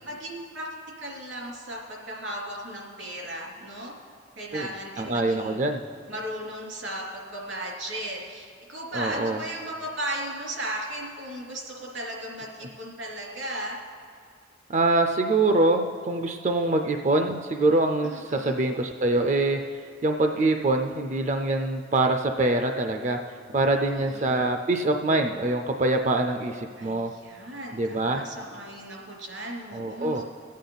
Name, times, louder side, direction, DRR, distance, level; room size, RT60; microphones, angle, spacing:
voice 1, 0.0-0.7 1.0-3.9 4.4-5.6 6.1-13.8 18.0-18.5 23.9-24.4 26.8-30.2, right 1 dB, 85° right, -3 dB, 3.1 m, -36 dB
voice 2, 5.0-5.8 8.9-9.4 14.7-27.1 27.7-28.2 29.7-30.2, right 2 dB, 40° right, 5 dB, 0.4 m, -24 dB
24.0 x 8.4 x 4.0 m, 2.2 s
head